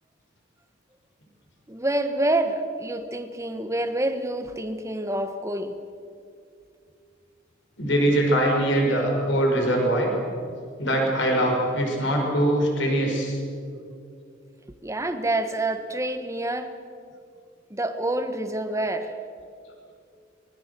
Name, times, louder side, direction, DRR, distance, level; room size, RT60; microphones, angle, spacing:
voice 1, 1.7-5.7 14.8-16.7 17.7-19.1, right 1 dB, 15° right, 8 dB, 1.4 m, -27 dB
voice 2, 7.8-10.1 10.8-13.4, right 1 dB, 65° left, 1 dB, 5.5 m, -22 dB
26.0 x 22.0 x 6.9 m, 2.4 s
head